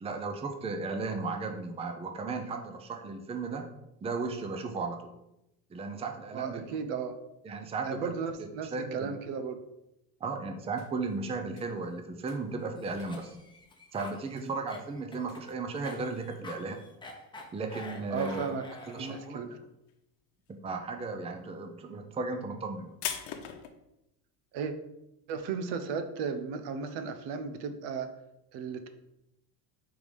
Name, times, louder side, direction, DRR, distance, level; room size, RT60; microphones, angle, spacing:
voice 1, 0.0-3.6 4.0-5.1 5.7-6.8 7.4-8.1 8.4-9.1 10.2-13.4 13.9-16.8 17.5-18.4 18.9-19.4 20.6-22.9, right 3 dB, 15° right, 5 dB, 0.6 m, -35 dB
voice 2, 6.3-7.1 7.8-9.6 14.3-14.5 18.1-18.7 19.0-19.5 24.5-24.7 25.3-28.1 28.5-28.9, right 6 dB, 65° right, 8 dB, 0.8 m, -35 dB
sound 1, 10.6-18.5 18.8-19.5 19.8-23.7, left 9 dB, 65° left, 1.0 m, -44 dB
Cough, 12.8-19.4, left 2 dB, 10° left, 0.9 m, -47 dB
4.8 x 3.8 x 5.3 m, 0.88 s
supercardioid pair, 120°, 46 cm